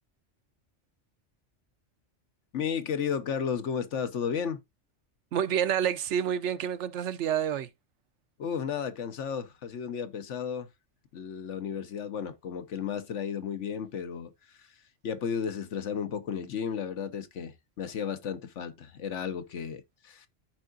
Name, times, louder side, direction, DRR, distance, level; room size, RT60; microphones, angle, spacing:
voice 1, 2.5-4.6 8.4-10.7 11.1-14.3 14.6-14.7 15.0-20.3, left 7 dB, 90° left, 1.2 m, -33 dB
voice 2, 5.3-7.7, right 9 dB, 80° right, 1.0 m, -28 dB
13.5 x 4.7 x 2.5 m
omnidirectional pair, 1.2 m